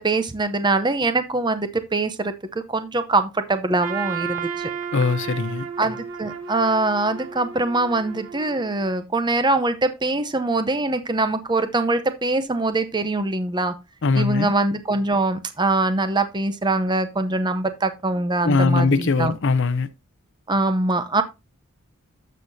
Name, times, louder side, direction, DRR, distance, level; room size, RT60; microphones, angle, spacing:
voice 1, 0.0-2.3 2.7-4.7 5.8-13.7 14.1-19.3 20.5-21.2, right 2 dB, 20° right, 0.7 m, -23 dB
Trumpet, 3.8-8.9, right 6 dB, 65° right, 1.2 m, -33 dB
voice 2, 4.9-5.7 14.0-14.5 18.4-19.9, left 4 dB, 55° left, 0.6 m, -20 dB
12.0 x 6.5 x 2.7 m
head